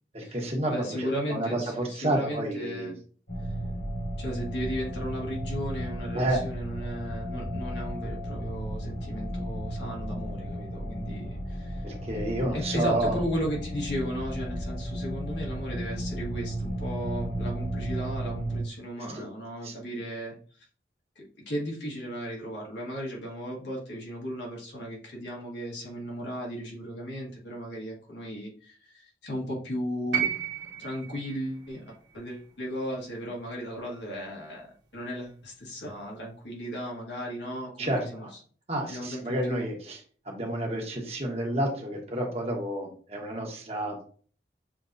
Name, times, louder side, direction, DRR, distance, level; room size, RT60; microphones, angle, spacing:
voice 1, 0.1-2.9 6.1-6.4 11.8-13.2 19.1-19.2 19.6-19.8 37.8-38.3 38.7-40.0 40.2-44.0, right 1 dB, 35° right, 0 dB, 1.2 m, -30 dB
voice 2, 0.7-3.0 4.2-11.9 12.5-20.6 21.1-30.3 30.8-38.3 38.9-39.6, equal, 85° left, -2 dB, 1.5 m, -36 dB
sound 1, 3.3-18.6, right 1 dB, 65° left, 1.5 m, -34 dB
sound 2, 30.1-34.3 35.5-35.6, right 9 dB, 90° right, 1.2 m, -35 dB
6.8 x 2.9 x 2.6 m, 0.43 s
head